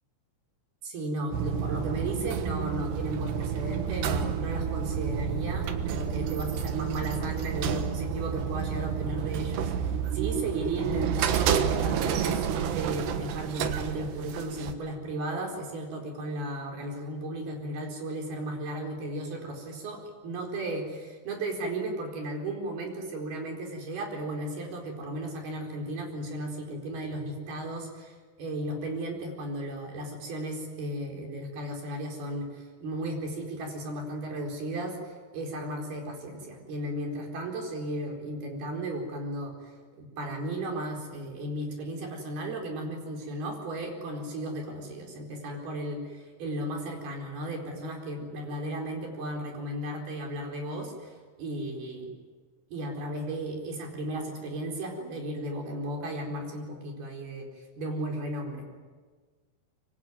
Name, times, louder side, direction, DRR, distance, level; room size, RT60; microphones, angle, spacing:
voice 1, 0.8-52.1 52.7-57.5 57.8-58.7, right 1 dB, 60° right, 1 dB, 6.2 m, -35 dB
sound 1, 1.3-14.7, right 8 dB, 75° right, 3.4 m, -30 dB
25.0 x 24.5 x 9.4 m, 1.4 s
omnidirectional pair, 5.2 m